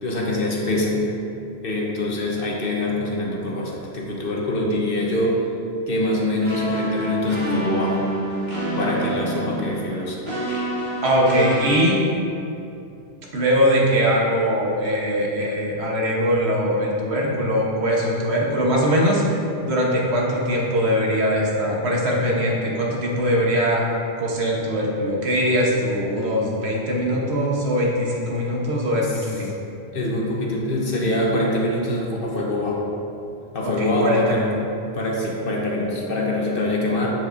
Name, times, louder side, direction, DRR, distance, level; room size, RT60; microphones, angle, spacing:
voice 1, 0.0-1.1 1.6-5.4 5.9-8.1 8.8-10.2 29.1-29.3 29.9-32.9 33.5-34.6 34.9-37.1, left 1 dB, 60° left, -3 dB, 1.2 m, -24 dB
sound 1, 6.4-11.8, right 1 dB, 55° right, 1.7 m, -27 dB
voice 2, 11.0-12.0 13.3-19.2 19.7-23.8 24.2-29.5 33.6-34.6, equal, 80° right, -3 dB, 1.4 m, -21 dB
7.7 x 7.1 x 2.6 m, 2.7 s
omnidirectional pair, 1.1 m